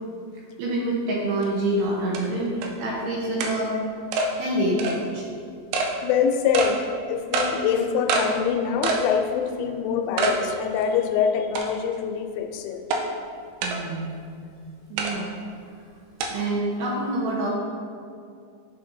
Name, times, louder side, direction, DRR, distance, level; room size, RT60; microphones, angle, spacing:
voice 1, 0.6-3.8 4.3-5.2 13.6-14.2 14.9-15.5 16.3-17.5, right 1 dB, 75° right, -4 dB, 2.6 m, -26 dB
sound 1, 1.4-1.5 2.1-2.2 2.6-2.7 3.4-3.5 4.1-4.3 4.8-5.0 5.7-5.9 6.5-6.7 7.3-7.5 8.1-8.3 8.8-9.1 9.5-9.6 10.2-10.4 10.8-10.9 11.6-11.9 12.9-13.0 13.6-13.8 15.0-15.1 16.2-16.3, right 3 dB, 90° right, 3.1 m, -24 dB
voice 2, 6.0-12.9, left 7 dB, 90° left, 5 dB, 3.0 m, -25 dB
11.0 x 4.2 x 2.6 m, 2.3 s
omnidirectional pair, 5.5 m